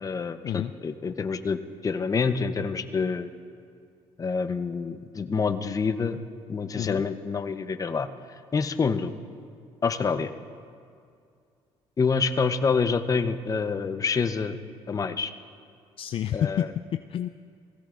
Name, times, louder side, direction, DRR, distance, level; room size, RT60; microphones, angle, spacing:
voice 1, 0.0-3.3 4.2-6.2 6.5-8.1 8.5-9.1 9.8-10.3 12.0-14.6 14.9-15.3 16.3-16.7, left 5 dB, 30° left, 9 dB, 0.8 m, -27 dB
voice 2, 16.0-17.3, left 10 dB, 50° left, 9 dB, 0.3 m, -29 dB
21.0 x 16.0 x 2.5 m, 2.3 s
cardioid pair, 95°, 11 cm